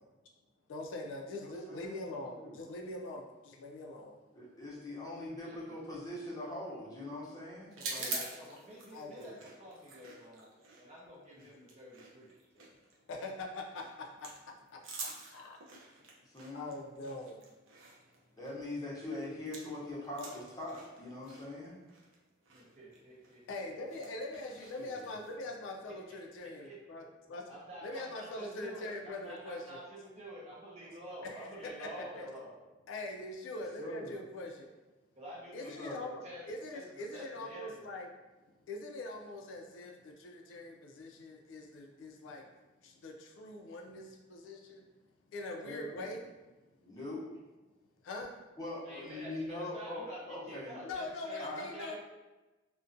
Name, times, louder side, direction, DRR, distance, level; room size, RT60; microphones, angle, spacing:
voice 1, 0.7-4.2 8.9-9.4 13.1-14.3 14.7-15.8 16.5-17.4 23.5-27.0 27.3-27.4 27.8-29.8 31.2-31.9 32.2-32.3 32.9-34.7 35.5-38.1 38.7-42.4 42.8-44.8 45.3-46.2 48.0-48.3 50.8-52.0, left 2 dB, 70° left, 1 dB, 0.3 m, -43 dB
voice 2, 1.4-2.6 4.3-8.2 16.2-16.8 18.4-21.7 24.8-24.9 33.8-34.1 35.8-36.0 45.6-46.0 46.8-47.2 48.6-50.8 51.4-51.6, left 1 dB, 20° left, -6 dB, 0.7 m, -42 dB
voice 3, 5.4-5.8 7.8-10.5 10.8-12.7 22.5-23.7 26.1-26.8 27.5-32.5 35.2-36.5 36.7-37.8 48.8-52.0, right 1 dB, 35° right, -4 dB, 0.6 m, -49 dB
sound 1, 7.7-19.8 20.0-25.3, right 3 dB, 85° right, 0.5 m, -47 dB
2.4 x 2.1 x 2.5 m, 1.1 s
head